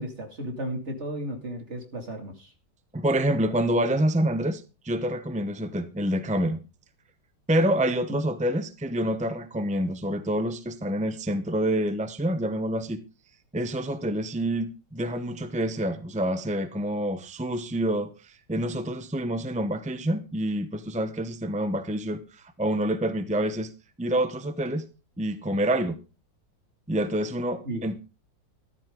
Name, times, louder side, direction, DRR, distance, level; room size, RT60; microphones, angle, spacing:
voice 1, 0.0-2.5 8.1-8.2 27.6-27.8, right 1 dB, 35° right, 2.8 m, -34 dB
voice 2, 2.9-6.6 7.5-13.0 13.5-23.7 24.0-24.8 25.2-26.0 26.9-28.0, right 1 dB, 10° right, 0.3 m, -27 dB
13.5 x 12.0 x 3.8 m
omnidirectional pair, 2.0 m